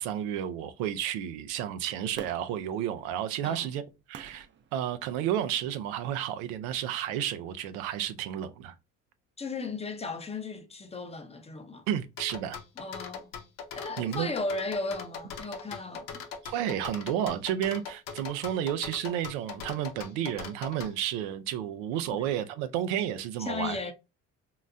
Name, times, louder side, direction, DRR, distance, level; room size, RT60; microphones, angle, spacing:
voice 1, 0.0-3.8 4.1-4.5 4.7-8.7 11.9-12.6 14.0-14.3 16.4-23.8, right 10 dB, 85° right, 0.5 m, -31 dB
Fireworks, 2.1-5.5 6.0-6.1, right 8 dB, 35° right, 0.5 m, -47 dB
voice 2, 9.4-11.9 12.8-13.3 13.7-16.3 22.1-22.2 23.4-23.9, left 3 dB, 20° left, 0.6 m, -36 dB
sound 1, 12.2-20.9, left 6 dB, 80° left, 0.7 m, -41 dB
3.9 x 2.1 x 2.5 m
supercardioid pair, 80°, 33 cm